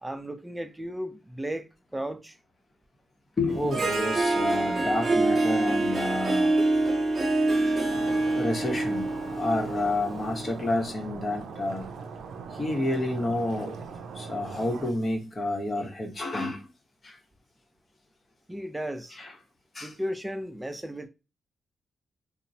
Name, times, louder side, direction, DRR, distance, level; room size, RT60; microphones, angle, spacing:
voice 1, 0.0-2.4 18.5-19.2 19.8-21.1, equal, 10° right, 0.4 m, -35 dB
voice 2, 3.4-6.5 7.7-7.8 8.3-11.9 12.5-13.8 14.1-16.7 17.0-17.2 19.1-19.3 19.7-19.9, left 2 dB, 40° left, 0.8 m, -29 dB
Harp, 3.5-10.6, right 2 dB, 40° right, 0.9 m, -26 dB
Stream, 7.9-14.9, right 5 dB, 90° right, 0.4 m, -41 dB
2.9 x 2.0 x 2.6 m
cardioid pair, 85°, 0 cm